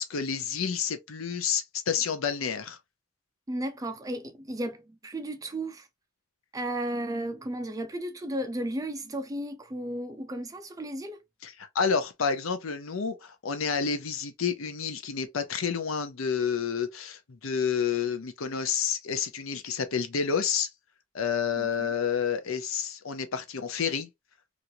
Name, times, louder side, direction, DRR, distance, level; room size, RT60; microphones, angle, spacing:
voice 1, 0.0-2.8 11.4-20.7 21.1-24.1, left 6 dB, 70° left, 0.6 m, -29 dB
voice 2, 3.5-5.9 6.5-11.2 21.6-21.7, right 1 dB, 15° right, 0.4 m, -34 dB
3.0 x 2.5 x 2.7 m
head